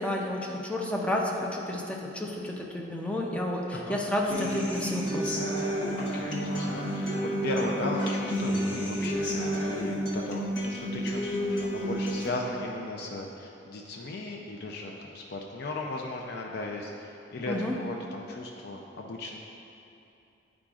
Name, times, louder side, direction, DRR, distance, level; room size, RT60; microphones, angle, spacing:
voice 1, 0.0-5.3 17.5-17.7, left 1 dB, 5° left, -2 dB, 0.5 m, -31 dB
Human voice / Acoustic guitar, 4.3-12.3, equal, 85° left, 1.2 m, -30 dB
voice 2, 6.0-19.4, left 2 dB, 60° left, 0 dB, 0.4 m, -37 dB
10.0 x 4.9 x 2.4 m, 2.8 s
head